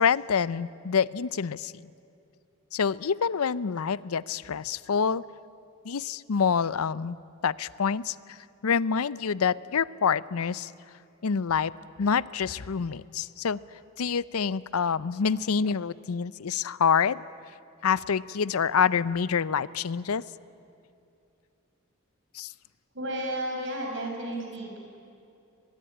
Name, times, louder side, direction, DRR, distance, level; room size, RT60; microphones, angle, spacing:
voice 1, 0.0-1.9 2.7-5.2 5.8-7.2 7.4-8.4 8.6-10.7 11.2-11.7 12.0-13.6 14.0-17.2 17.8-20.2 22.3-22.5, left 6 dB, 90° left, 19 dB, 0.6 m, -27 dB
voice 2, 22.9-24.8, right 1 dB, 60° right, 0 dB, 6.1 m, -32 dB
23.0 x 21.5 x 10.0 m, 2.6 s
head